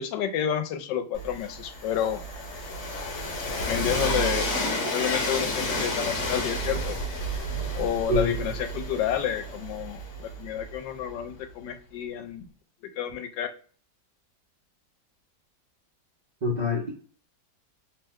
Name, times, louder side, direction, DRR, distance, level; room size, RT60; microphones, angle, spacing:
voice 1, 0.0-2.2 3.7-7.0 7.8-12.5 13.0-13.5, left 9 dB, 80° left, 8 dB, 1.2 m, -30 dB
Train, 1.1-11.0, equal, 55° left, 1.0 m, -31 dB
voice 2, 8.1-8.5 16.4-16.9, left 1 dB, 75° right, -3 dB, 0.4 m, -26 dB
3.0 x 2.0 x 3.5 m, 0.42 s
omnidirectional pair, 2.0 m